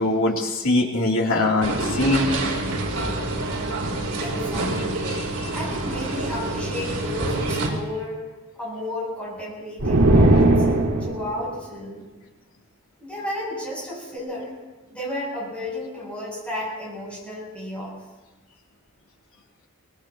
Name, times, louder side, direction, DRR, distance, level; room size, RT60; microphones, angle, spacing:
voice 1, 0.0-2.3 5.1-5.2, left 2 dB, 70° left, -2 dB, 2.9 m, -22 dB
sound 1, 1.6-7.7, right 2 dB, 85° right, 3.2 m, -27 dB
voice 2, 4.2-5.0 5.5-8.2 8.5-10.7 11.0-12.0 13.0-14.5 14.8-18.0, left 1 dB, 5° left, -5 dB, 7.8 m, -33 dB
sound 2, 9.8-11.4, right 1 dB, 70° right, 1.6 m, -17 dB
24.5 x 19.5 x 2.9 m, 1.2 s
head